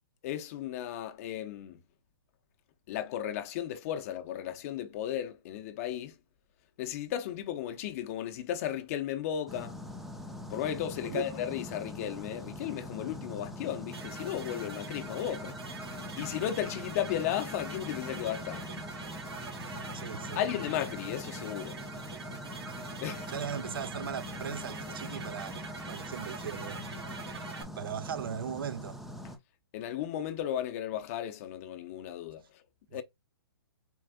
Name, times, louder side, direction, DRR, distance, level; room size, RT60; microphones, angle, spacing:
voice 1, 0.2-1.8 2.9-6.1 6.8-9.8 10.5-15.6 16.2-18.7 20.4-21.8 23.0-23.3 29.7-32.4 32.9-33.0, left 11 dB, 35° left, 0.7 m, -35 dB
sound 1, 9.5-29.4, left 1 dB, ahead, 0.6 m, -43 dB
sound 2, 13.9-27.6, right 4 dB, 80° right, 1.4 m, -44 dB
voice 2, 19.9-20.4 23.3-26.8 27.8-29.0 32.9-33.0, right 8 dB, 65° right, 0.5 m, -38 dB
4.4 x 2.5 x 3.6 m
hypercardioid pair, 140°, 13 cm